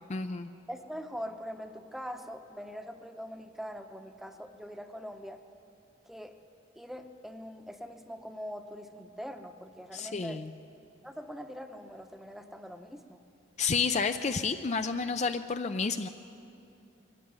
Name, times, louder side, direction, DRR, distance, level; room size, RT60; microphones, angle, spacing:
voice 1, 0.1-0.5 9.9-10.5 13.6-16.1, left 5 dB, 35° left, 8 dB, 0.5 m, -30 dB
voice 2, 0.7-5.4 6.0-6.4 6.7-10.4 11.0-13.2, equal, ahead, 6 dB, 0.9 m, -42 dB
22.5 x 14.5 x 9.7 m, 2.7 s
head